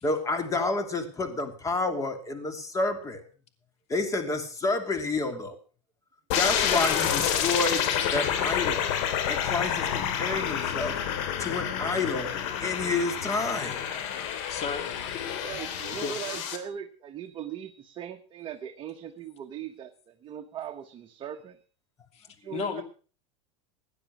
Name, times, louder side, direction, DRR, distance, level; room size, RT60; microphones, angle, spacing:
voice 1, 0.0-3.2 3.9-5.6 6.3-7.8 8.1-8.9 9.3-11.0 11.4-12.3 12.6-13.8, left 3 dB, 20° left, 8 dB, 2.9 m, -29 dB
sound 1, 6.3-16.6, left 9 dB, 70° left, 3.1 m, -29 dB
voice 2, 14.5-14.9 16.0-16.2 22.1-22.3 22.5-22.8, left 6 dB, 40° left, 9 dB, 2.7 m, -32 dB
voice 3, 15.4-21.6 22.4-22.8, right 9 dB, 30° right, 5 dB, 1.4 m, -39 dB
17.0 x 10.5 x 6.1 m, 0.39 s
supercardioid pair, 130°, 16 cm